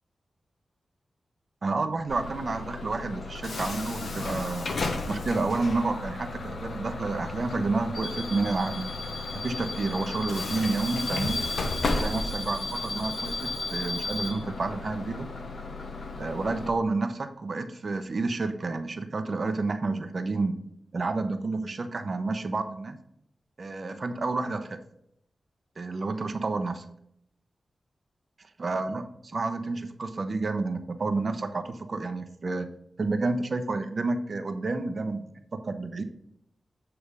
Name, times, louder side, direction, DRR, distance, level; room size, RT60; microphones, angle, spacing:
voice 1, 1.6-4.8 5.1-8.9 9.3-11.5 11.9-15.3 16.2-20.6 20.9-23.0 23.6-24.8 25.8-26.9 28.6-32.7 33.0-35.3 35.5-36.0, right 3 dB, 55° right, 8 dB, 0.7 m, -30 dB
Bus / Alarm, 2.1-16.7, left 3 dB, 75° left, 0.9 m, -33 dB
8.2 x 3.4 x 5.2 m, 0.73 s
cardioid pair, 65°, 0 cm